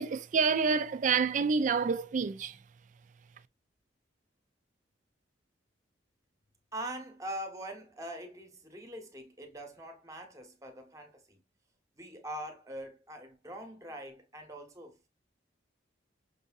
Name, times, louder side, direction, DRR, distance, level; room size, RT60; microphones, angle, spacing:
voice 1, 0.0-2.6, right 5 dB, 40° right, 0.4 m, -28 dB
voice 2, 6.7-11.4 12.0-15.0, right 1 dB, 15° right, 0.9 m, -43 dB
6.1 x 2.7 x 2.4 m
head